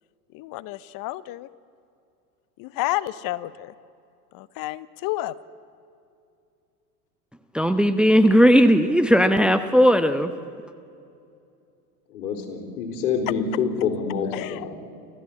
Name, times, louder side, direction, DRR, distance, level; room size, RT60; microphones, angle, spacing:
voice 1, 0.3-1.5 2.6-3.7 4.3-5.3 14.3-14.8, left 16 dB, 45° left, 18 dB, 0.8 m, -30 dB
voice 2, 7.5-10.3, equal, ahead, 11 dB, 0.9 m, -17 dB
voice 3, 12.1-14.7, left 6 dB, 70° left, 4 dB, 4.0 m, -27 dB
29.5 x 14.0 x 8.5 m, 2.5 s
hypercardioid pair, 85°, 49 cm